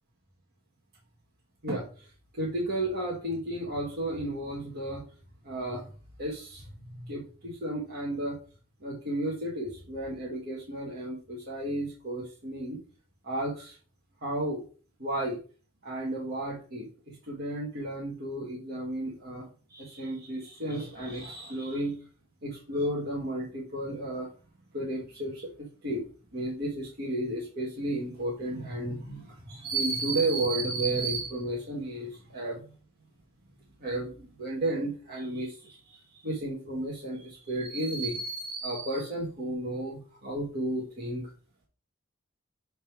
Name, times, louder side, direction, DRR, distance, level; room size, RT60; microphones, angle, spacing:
voice 1, 1.6-5.0 5.4-5.9 6.2-8.4 8.8-12.8 13.2-13.8 14.2-14.6 15.0-15.4 15.8-22.0 22.4-24.3 24.7-26.1 26.3-32.6 33.8-41.3, right 1 dB, 50° right, -4 dB, 1.4 m, -33 dB
6.4 x 3.5 x 4.5 m, 0.38 s
head